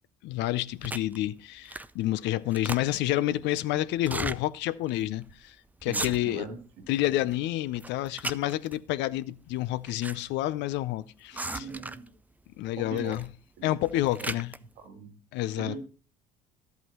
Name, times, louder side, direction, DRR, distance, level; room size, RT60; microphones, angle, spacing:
voice 1, 0.2-5.6 5.8-6.5 6.9-11.6 12.6-13.2 13.6-14.5 15.3-15.7, left 15 dB, 65° left, 0.6 m, -29 dB
sound 1, 0.8-1.2 1.7-2.0 2.3-3.1 4.0-4.4 4.9-5.0 5.2-5.5 5.8-6.5 6.9-7.4 7.8-8.8 9.6-10.2 10.4-10.5 11.3-12.1 13.0-13.3 13.7-14.6, right 2 dB, 10° right, 0.4 m, -36 dB
voice 2, 5.8-7.3 11.3-12.1 12.8-13.2 13.6-13.8 14.2-14.4 14.8-15.2 15.6-15.8, right 5 dB, 75° right, 2.2 m, -41 dB
12.5 x 8.2 x 3.0 m
hypercardioid pair, 65°, 20 cm